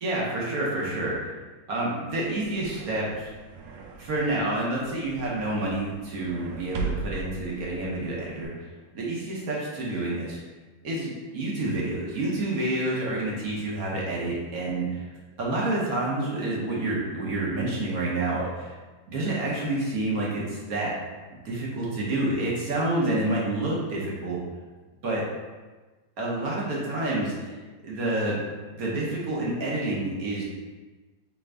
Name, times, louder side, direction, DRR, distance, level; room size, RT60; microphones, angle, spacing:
voice 1, 0.0-1.1 1.7-3.3 4.0-8.5 8.9-10.4 10.8-15.0 15.4-18.7 19.1-20.9 21.4-24.4 25.0-25.2 26.2-27.6 27.8-28.4 28.8-30.4, right 2 dB, 55° right, -4 dB, 1.2 m, -28 dB
sound 1, 2.1-8.5, right 4 dB, 80° right, 1.3 m, -39 dB
3.7 x 3.5 x 3.3 m, 1.3 s
omnidirectional pair, 2.1 m